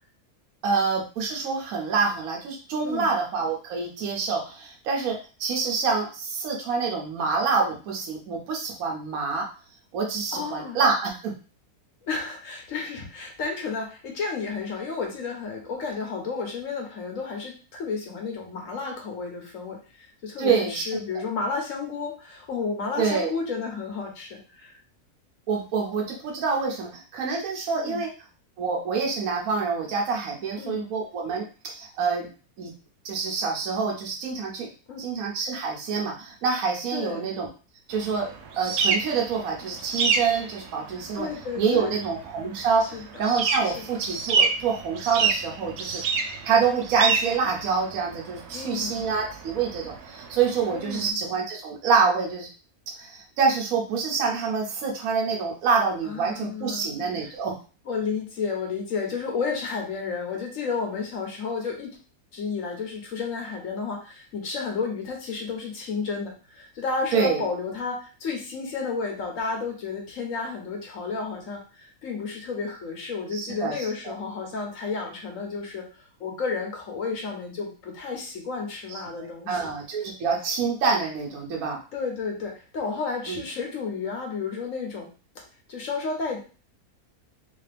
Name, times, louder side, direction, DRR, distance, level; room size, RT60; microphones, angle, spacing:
voice 1, 0.6-9.4 9.9-11.3 20.4-20.9 23.0-23.3 25.5-28.1 28.6-32.3 32.6-32.7 33.0-34.7 35.0-37.5 37.9-38.3 38.6-41.3 41.6-46.0 46.4-52.5 53.0-57.5 67.1-67.4 73.3-73.7 74.0-74.1 79.2-81.8 83.3-83.4, right 5 dB, 70° right, -1 dB, 1.3 m, -26 dB
voice 2, 10.3-10.8 12.1-24.8 27.7-28.0 30.6-30.8 34.9-35.0 36.9-37.3 41.1-42.0 42.8-43.2 43.6-43.8 48.5-49.1 50.7-51.2 56.1-56.9 57.8-62.0 62.3-79.6 81.9-85.1 85.7-86.4, left 4 dB, 60° left, 0 dB, 1.3 m, -32 dB
sound 1, 37.9-51.1, right 5 dB, 85° right, 1.1 m, -29 dB
3.3 x 2.8 x 3.3 m, 0.36 s
omnidirectional pair, 1.6 m